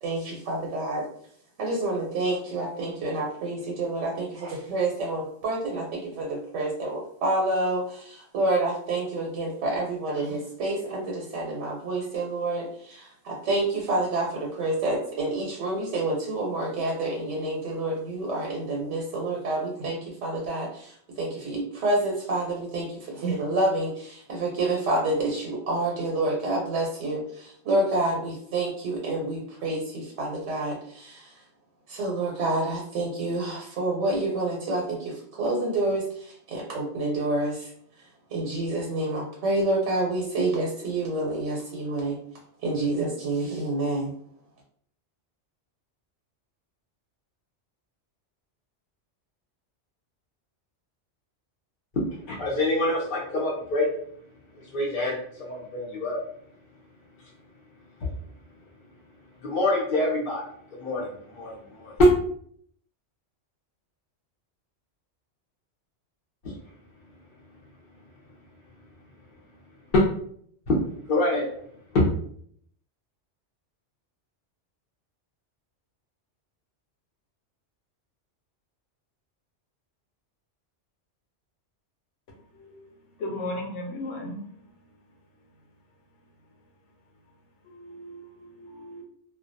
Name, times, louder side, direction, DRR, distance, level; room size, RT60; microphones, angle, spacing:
voice 1, 0.0-1.0 1.6-31.3 31.9-37.7 38.3-42.2 42.6-44.1, right 2 dB, 85° right, -1 dB, 0.9 m, -28 dB
voice 2, 51.9-53.9 54.5-56.2 59.4-60.4 60.7-62.1 66.4-66.6 69.9-70.0 70.7-70.8 71.1-71.5 71.9-72.1, left 1 dB, 55° left, -5 dB, 0.6 m, -25 dB
voice 3, 83.2-84.4 87.7-89.0, left 1 dB, 85° left, 0 dB, 0.9 m, -36 dB
2.3 x 2.1 x 2.5 m, 0.63 s
omnidirectional pair, 1.2 m